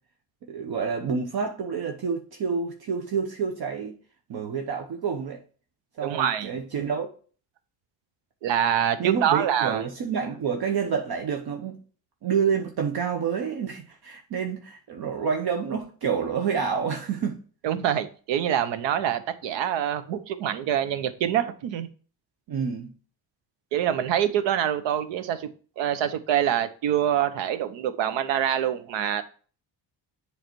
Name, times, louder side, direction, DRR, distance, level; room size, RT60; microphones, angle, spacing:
voice 1, 0.4-3.9 4.3-5.4 6.0-7.1 9.0-11.8 12.2-17.4 22.5-22.9, right 6 dB, 60° right, 1.0 m, -28 dB
voice 2, 6.0-6.5 8.4-9.8 17.6-21.9 23.7-25.5 25.8-29.2, right 10 dB, 85° right, 0.8 m, -25 dB
7.8 x 3.3 x 4.5 m
cardioid pair, 95°, 43 cm